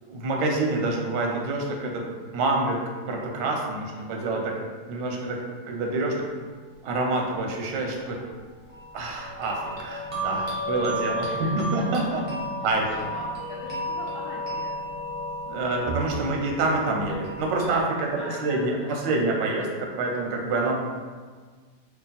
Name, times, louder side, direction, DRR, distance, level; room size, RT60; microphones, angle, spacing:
voice 1, 0.0-2.0 2.3-2.8 3.1-4.5 4.9-6.1 6.4-6.5 6.8-8.2 8.9-11.3 11.6-12.2 12.6-12.8 15.5-18.1 18.4-20.8, right 2 dB, 90° right, 0 dB, 1.3 m, -27 dB
sound 1, 8.7-17.8, equal, 45° right, 0.4 m, -33 dB
voice 2, 11.2-11.7 12.6-14.8 18.2-19.0, left 1 dB, 65° left, -7 dB, 0.8 m, -42 dB
3.3 x 2.4 x 3.9 m, 1.5 s
omnidirectional pair, 1.9 m